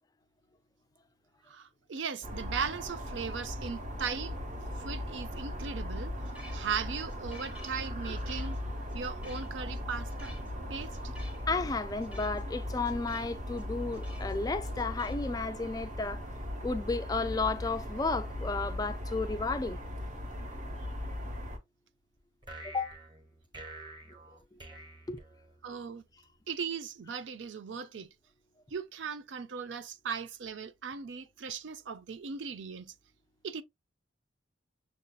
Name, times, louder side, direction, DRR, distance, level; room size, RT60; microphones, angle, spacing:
voice 1, 1.5-4.3 4.8-6.1 6.5-8.6 8.9-10.4 10.7-10.9 25.6-26.0 26.5-28.1 28.7-32.9 33.4-33.6, right 6 dB, 70° right, 0.5 m, -38 dB
sound 1, 2.2-21.6, left 1 dB, 40° right, 0.9 m, -38 dB
sound 2, 6.2-15.2, left 1 dB, 5° right, 0.8 m, -55 dB
voice 2, 11.5-16.2 16.6-19.8 22.6-22.9 25.1-25.2, left 3 dB, 20° left, 0.3 m, -33 dB
sound 3, 22.4-25.9, right 1 dB, 25° right, 1.2 m, -48 dB
6.5 x 2.7 x 2.3 m
head